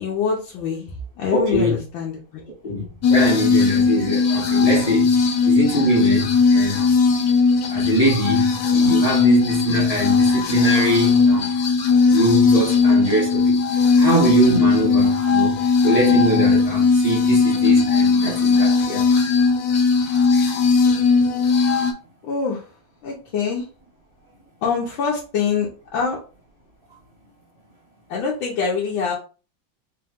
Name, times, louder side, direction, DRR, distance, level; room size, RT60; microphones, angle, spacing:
voice 1, 0.0-2.4 22.2-22.7 23.0-23.7 24.6-26.2 28.1-29.1, left 5 dB, 80° left, 1.6 m, -25 dB
voice 2, 1.3-1.8 2.6-5.1 5.4-6.9 7.7-11.5 12.1-13.6 13.9-15.6 15.8-19.1, equal, 20° left, 1.2 m, -22 dB
sound 1, 3.0-21.9, left 4 dB, 60° left, 1.0 m, -18 dB
4.0 x 2.9 x 3.5 m
omnidirectional pair, 2.2 m